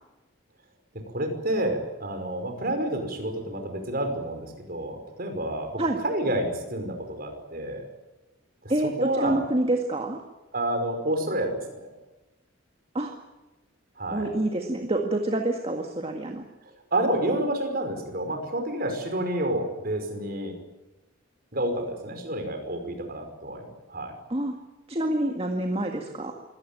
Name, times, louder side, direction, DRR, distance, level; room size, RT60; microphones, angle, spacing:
voice 1, 0.9-7.8 8.6-8.7 9.0-9.4 10.5-11.9 14.0-14.3 16.9-20.6 21.5-24.1, right 1 dB, 45° right, 5 dB, 5.4 m, -29 dB
voice 2, 8.7-10.2 12.9-13.1 14.1-16.4 24.3-24.5 24.9-26.3, right 1 dB, 30° right, 3 dB, 1.9 m, -27 dB
24.0 x 17.5 x 9.1 m, 1.1 s
head